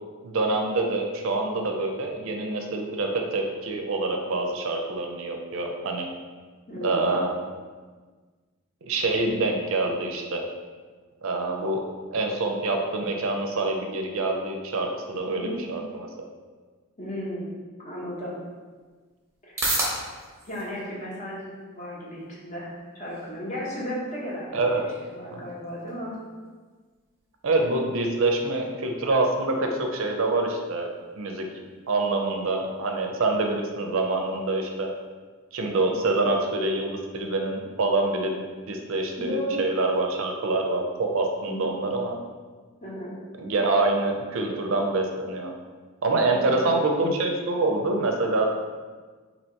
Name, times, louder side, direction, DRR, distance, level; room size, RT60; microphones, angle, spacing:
voice 1, 0.2-6.1 6.8-7.3 8.8-10.4 11.2-11.8 12.1-16.1 24.5-24.8 25.3-25.5 27.4-30.9 31.2-31.5 31.9-34.9 35.5-42.2 43.4-45.5 46.0-48.5, right 2 dB, 70° right, 2 dB, 0.5 m, -26 dB
voice 2, 6.7-7.1 15.2-15.6 17.0-17.5 17.8-18.4 19.5-19.7 20.4-26.2 35.9-36.1 39.2-39.6 41.5-41.8 42.8-43.2 46.3-46.8, equal, 35° left, -6 dB, 0.9 m, -35 dB
sound 1, 18.1-35.1, right 2 dB, 15° right, 0.7 m, -40 dB
2.8 x 2.8 x 4.3 m, 1.4 s
head